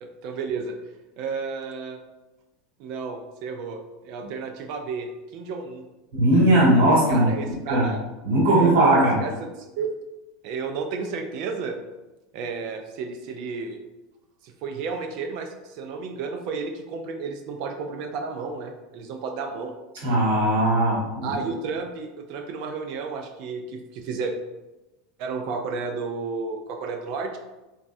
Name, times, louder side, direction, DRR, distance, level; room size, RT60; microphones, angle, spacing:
voice 1, 0.0-0.8 1.2-2.0 2.8-5.8 7.1-8.0 8.5-9.9 10.4-11.8 12.3-13.8 14.4-19.7 21.2-24.4 25.2-27.4, right 4 dB, 60° right, 4 dB, 0.3 m, -32 dB
voice 2, 6.1-7.9 8.2-9.3 20.0-21.3, right 1 dB, 75° right, -4 dB, 1.1 m, -19 dB
3.1 x 2.2 x 2.5 m, 1.0 s
hypercardioid pair, 90°, 0 cm